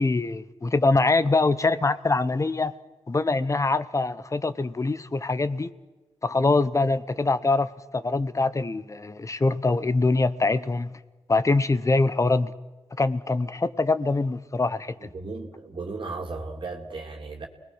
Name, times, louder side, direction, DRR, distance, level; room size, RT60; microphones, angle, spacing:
voice 1, 0.0-2.7 3.1-5.7 6.2-11.0 11.3-12.5 13.0-15.1, left 3 dB, 30° left, 1.0 m, -24 dB
voice 2, 15.0-17.5, right 3 dB, 50° right, 2.7 m, -35 dB
29.5 x 20.5 x 6.4 m
cardioid pair, 85°, 11 cm